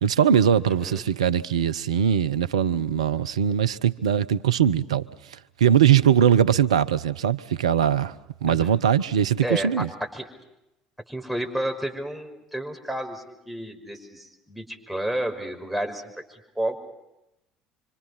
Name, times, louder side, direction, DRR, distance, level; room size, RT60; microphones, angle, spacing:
voice 1, 0.0-5.1 5.6-8.1 8.4-9.9, right 9 dB, 85° right, 0.8 m, -21 dB
voice 2, 8.5-8.8 9.4-9.8 10.1-10.3 11.1-16.0 16.3-16.8, right 1 dB, ahead, 5.7 m, -31 dB
28.0 x 25.5 x 5.7 m
hypercardioid pair, 60°, 3 cm